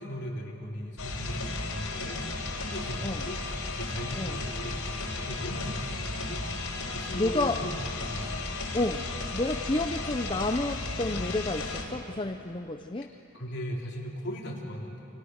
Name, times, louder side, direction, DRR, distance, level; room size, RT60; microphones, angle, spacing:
voice 1, 0.0-2.2 2.5-3.4 3.8-6.4 6.9-8.5 13.4-15.0, equal, 50° left, -2 dB, 4.0 m, -38 dB
sound 1, 1.0-11.9, left 3 dB, 80° left, 3.8 m, -34 dB
voice 2, 7.1-7.6 8.7-9.1 9.3-13.1, left 2 dB, 20° left, 5 dB, 0.6 m, -30 dB
29.0 x 27.5 x 6.6 m, 2.9 s
head